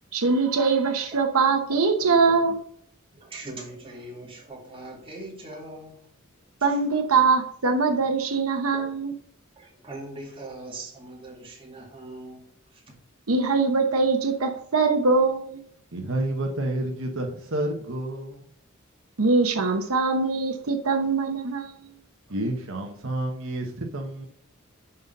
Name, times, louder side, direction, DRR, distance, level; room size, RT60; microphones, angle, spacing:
voice 1, 0.1-2.6 6.6-9.1 13.3-15.6 19.2-21.7, right 4 dB, 85° right, 5 dB, 1.0 m, -22 dB
voice 2, 2.0-2.6 3.1-6.1 6.6-6.8 8.7-8.8 9.6-12.9, right 2 dB, 25° right, -1 dB, 2.4 m, -41 dB
voice 3, 15.9-18.5 22.3-24.3, right 1 dB, 65° right, 2 dB, 1.2 m, -29 dB
11.0 x 4.1 x 5.3 m, 0.65 s
head